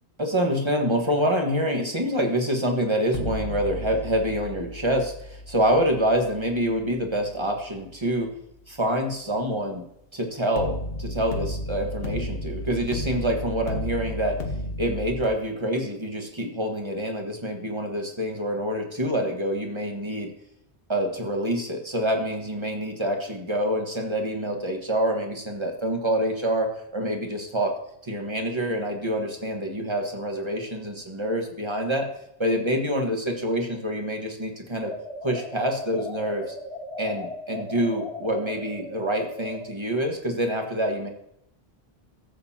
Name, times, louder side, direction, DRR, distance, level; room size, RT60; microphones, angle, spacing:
voice 1, 0.2-8.3 8.7-9.8 10.1-14.4 14.8-20.3 20.9-27.7 28.0-32.1 32.4-34.9 35.2-36.5 37.0-41.1, equal, 25° right, 2 dB, 1.5 m, -26 dB
sound 1, 3.1-8.2 10.6-15.3, left 1 dB, 60° left, 1.5 m, -34 dB
sound 2, 34.8-39.7, left 1 dB, 30° left, 1.6 m, -37 dB
15.0 x 7.9 x 2.8 m, 0.77 s
omnidirectional pair, 1.1 m